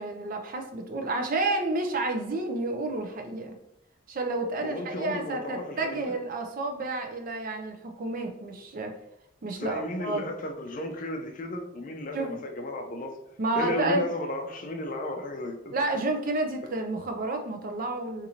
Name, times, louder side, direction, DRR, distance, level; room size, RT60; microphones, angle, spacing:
voice 1, 0.0-3.6 4.1-8.9 9.4-10.3 12.1-12.4 13.4-14.0 15.7-18.3, right 2 dB, 45° right, 4 dB, 0.5 m, -30 dB
voice 2, 4.6-6.1 9.5-13.2 13.6-15.7, left 1 dB, 40° left, 4 dB, 0.5 m, -34 dB
4.0 x 2.6 x 2.8 m, 0.79 s
head